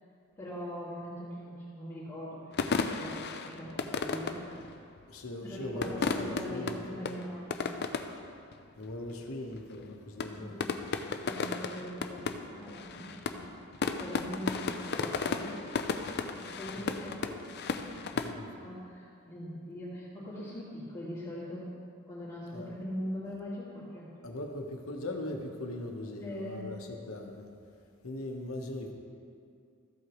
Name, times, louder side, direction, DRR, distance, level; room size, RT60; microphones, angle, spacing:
voice 1, 0.4-4.4 5.4-7.7 10.3-10.8 11.2-13.5 14.0-15.6 16.4-17.4 17.7-21.7 22.0-24.1 26.2-26.7, equal, 15° left, -12 dB, 2.2 m, -42 dB
sound 1, 2.5-5.0 5.7-8.3 8.5-8.6 8.8-9.3 9.5-9.9 10.2-18.3, left 4 dB, 50° left, 0.5 m, -34 dB
voice 2, 5.1-7.0 8.8-10.7 16.8-16.9 18.1-18.5 22.5-22.7 24.2-27.5 28.0-28.9, left 1 dB, 80° left, 2 dB, 1.1 m, -40 dB
14.0 x 8.0 x 3.1 m, 2.4 s
head